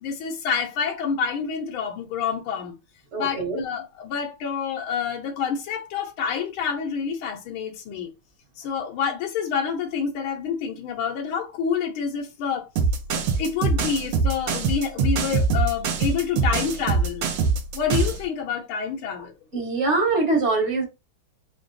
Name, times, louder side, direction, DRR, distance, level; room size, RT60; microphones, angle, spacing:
voice 1, 0.0-2.7 3.2-8.1 8.6-12.7 13.1-17.3 17.7-19.3, left 7 dB, 80° left, 1.6 m, -28 dB
voice 2, 3.1-3.6 19.5-20.8, right 3 dB, 40° right, 1.4 m, -23 dB
sound 1, 12.8-18.2, right 4 dB, 70° right, 1.4 m, -23 dB
3.7 x 3.5 x 2.6 m
omnidirectional pair, 2.3 m